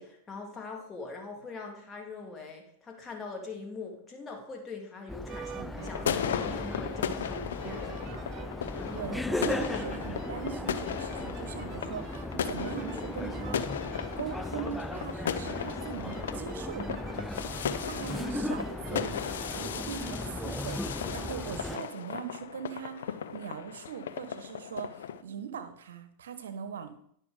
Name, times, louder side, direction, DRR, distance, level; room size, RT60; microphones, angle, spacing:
voice 1, 0.0-8.1, left 3 dB, 20° left, 1 dB, 2.5 m, -42 dB
sound 1, 5.1-21.8, left 2 dB, 5° left, 0.3 m, -37 dB
sound 2, 5.3-21.9, right 10 dB, 40° right, 0.6 m, -47 dB
sound 3, 5.8-25.2, left 8 dB, 75° left, 0.6 m, -36 dB
voice 2, 8.9-13.8 14.2-17.0 17.8-27.1, right 8 dB, 75° right, 10 dB, 1.1 m, -41 dB
10.0 x 6.1 x 5.0 m, 0.68 s
hypercardioid pair, 105°, 0 cm